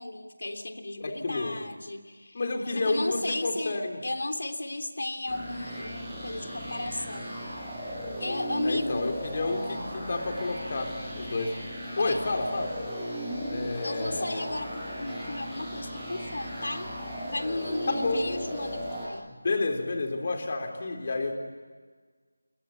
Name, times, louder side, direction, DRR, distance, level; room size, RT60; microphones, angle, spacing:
voice 1, 0.0-2.4 2.7-7.3 8.2-9.1 12.0-12.2 13.8-16.9 17.2-19.3, left 2 dB, 70° left, 6 dB, 3.4 m, -34 dB
voice 2, 1.0-1.6 2.3-4.0 8.6-11.6 12.0-12.8 13.5-14.5 17.9-18.2 19.3-21.3, left 3 dB, 35° left, 3 dB, 4.0 m, -30 dB
sound 1, 5.3-19.1, equal, ahead, 6.0 m, -36 dB
29.5 x 22.5 x 8.6 m, 1.5 s
figure-of-eight pair, 175°, 0 cm